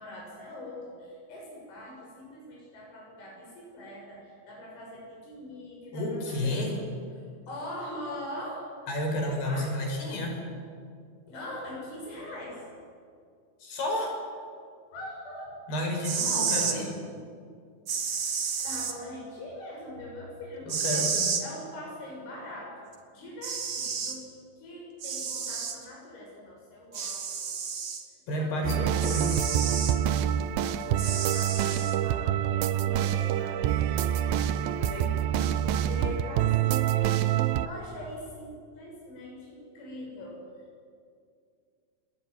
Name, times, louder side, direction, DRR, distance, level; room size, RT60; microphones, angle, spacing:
voice 1, 0.0-6.6 7.5-8.6 9.5-9.7 11.3-12.6 14.9-15.6 18.6-21.1 21.4-22.7 23.1-24.3 24.6-27.5 28.4-29.4 30.6-37.3 37.6-40.4, left 1 dB, 85° left, -3 dB, 9.1 m, -42 dB
voice 2, 5.9-6.8 8.9-10.4 13.6-14.1 15.7-16.9 20.7-21.3 28.3-29.5, left 1 dB, 60° left, 2 dB, 7.7 m, -30 dB
sound 1, 15.9-16.8 17.9-18.9 20.7-21.4 22.9-23.0 23.4-24.2 25.0-25.8 26.9-28.0 29.0-30.0 31.0-31.9, right 6 dB, 45° right, 2.0 m, -31 dB
sound 2, 28.6-37.7, right 11 dB, 80° right, 2.1 m, -26 dB
28.5 x 21.0 x 9.5 m, 2.2 s
omnidirectional pair, 5.4 m